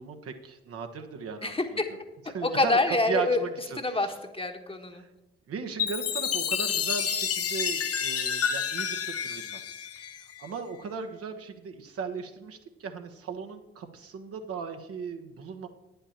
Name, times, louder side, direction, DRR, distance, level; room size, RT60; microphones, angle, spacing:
voice 1, 0.0-1.5 2.3-4.1 4.9-5.1 5.5-9.6 10.0-10.1 10.4-15.7, right 5 dB, 50° right, 6 dB, 1.1 m, -37 dB
voice 2, 1.4-1.9 2.2-3.4 3.8-5.0, left 2 dB, 20° left, 5 dB, 1.3 m, -27 dB
Chime, 5.8-10.5, left 7 dB, 50° left, 0.9 m, -29 dB
9.8 x 5.6 x 7.2 m, 1.0 s
hypercardioid pair, 45°, 29 cm